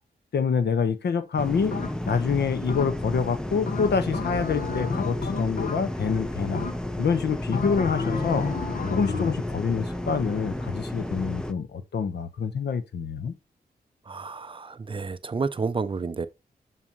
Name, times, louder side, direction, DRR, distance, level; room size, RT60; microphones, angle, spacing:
voice 1, 0.3-1.7 2.1-6.6 7.0-8.5 8.9-13.3, left 6 dB, 80° left, 1.1 m, -26 dB
sound 1, 1.4-11.5, left 1 dB, 5° left, 0.7 m, -32 dB
sound 2, 1.7-2.2 2.7-3.2 3.7-6.1 6.5-7.1 7.5-9.5, left 4 dB, 55° left, 1.2 m, -32 dB
voice 2, 14.1-16.3, right 4 dB, 30° right, 0.5 m, -30 dB
7.3 x 6.2 x 3.0 m
wide cardioid pair, 165°, 17 cm